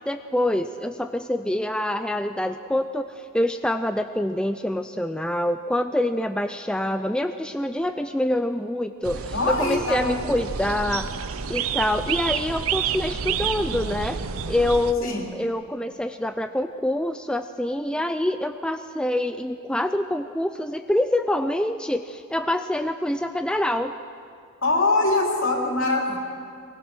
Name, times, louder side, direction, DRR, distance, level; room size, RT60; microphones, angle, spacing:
voice 1, 0.1-11.1 11.5-14.2 14.5-23.9, left 1 dB, 5° left, 8 dB, 0.4 m, -26 dB
sound 1, 9.0-14.9, right 7 dB, 85° right, 0.8 m, -29 dB
voice 2, 9.3-10.2 15.0-15.3 24.6-26.2, left 2 dB, 70° left, 0 dB, 3.3 m, -23 dB
22.5 x 21.0 x 6.2 m, 2.3 s
head